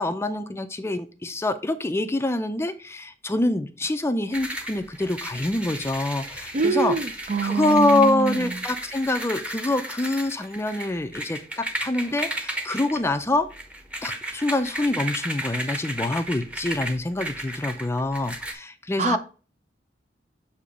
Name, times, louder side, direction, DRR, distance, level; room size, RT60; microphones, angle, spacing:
voice 1, 0.0-7.0 7.4-13.5 14.0-19.2, left 2 dB, 15° left, 0.4 m, -25 dB
sound 1, 4.3-18.5, right 1 dB, 5° right, 0.8 m, -34 dB
voice 2, 6.5-8.4 19.0-19.2, right 4 dB, 45° right, 0.5 m, -24 dB
6.8 x 2.8 x 4.9 m
head